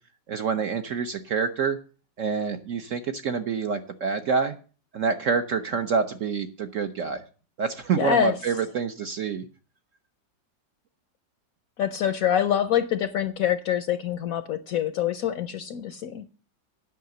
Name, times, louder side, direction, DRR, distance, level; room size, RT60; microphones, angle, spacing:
voice 1, 0.3-1.8 2.2-4.6 4.9-7.2 7.6-9.4, right 5 dB, 60° right, 0.8 m, -27 dB
voice 2, 8.0-8.3 11.8-16.2, left 10 dB, 65° left, 0.9 m, -25 dB
9.3 x 5.8 x 7.7 m
omnidirectional pair, 2.0 m